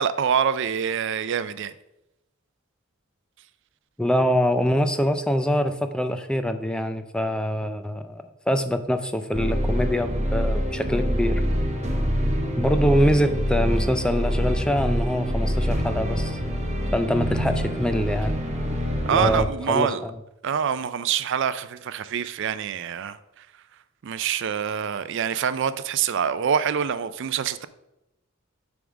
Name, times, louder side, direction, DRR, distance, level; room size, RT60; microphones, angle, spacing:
voice 1, 0.0-1.7 19.1-20.0 20.4-23.5 24.0-27.7, right 7 dB, 60° right, 14 dB, 0.4 m, -25 dB
voice 2, 4.0-11.4 12.6-16.4 16.9-18.4 19.1-20.2, equal, 5° left, 9 dB, 0.3 m, -24 dB
sound 1, 9.3-19.4, equal, 35° right, 0.8 m, -25 dB
7.1 x 3.6 x 6.2 m, 0.89 s
head